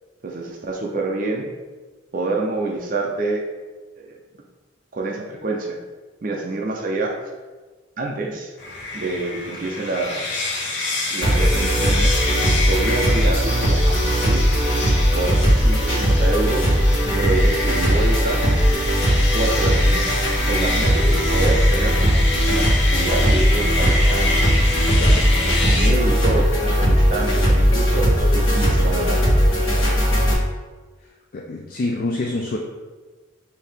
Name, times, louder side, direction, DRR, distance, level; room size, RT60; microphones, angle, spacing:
voice 1, 0.2-1.5 2.1-3.4 4.0-4.2 4.9-5.8 6.2-7.1 8.0-8.5 8.9-10.3 11.1-12.1 12.7-14.4 15.1-18.4 19.3-22.0 22.5-24.4 25.0-29.3, right 2 dB, 45° right, 0 dB, 0.5 m, -27 dB
sound 1, 8.6-25.9, left 2 dB, 60° left, 0.9 m, -27 dB
sound 2, 11.2-30.3, equal, 85° left, 1.3 m, -18 dB
voice 2, 25.0-25.3 31.3-32.6, left 2 dB, 45° left, 0 dB, 0.3 m, -26 dB
5.5 x 2.7 x 3.5 m, 1.3 s
head